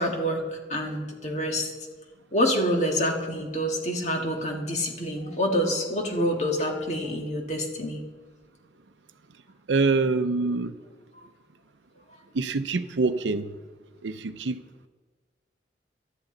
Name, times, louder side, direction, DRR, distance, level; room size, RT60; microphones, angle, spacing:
voice 1, 0.0-1.7 2.3-8.0, equal, 40° left, 2 dB, 1.8 m, -27 dB
voice 2, 9.7-10.7 12.3-13.6 14.0-14.6, right 3 dB, 90° right, 9 dB, 0.6 m, -25 dB
17.0 x 12.5 x 3.9 m, 1.4 s
head